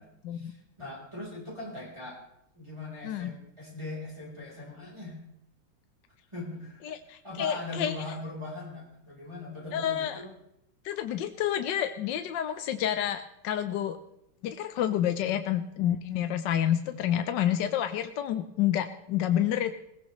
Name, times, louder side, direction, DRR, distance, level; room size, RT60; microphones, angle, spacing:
voice 1, 0.0-2.2 2.5-5.2 6.3-6.8 7.2-10.3 15.2-15.3 16.9-17.0, left 2 dB, 15° right, -4 dB, 3.9 m, -40 dB
voice 2, 6.8-7.9 9.7-10.2 10.8-14.0 14.4-19.7, left 10 dB, 70° left, 9 dB, 1.4 m, -29 dB
20.5 x 17.5 x 3.1 m, 0.79 s
omnidirectional pair, 2.1 m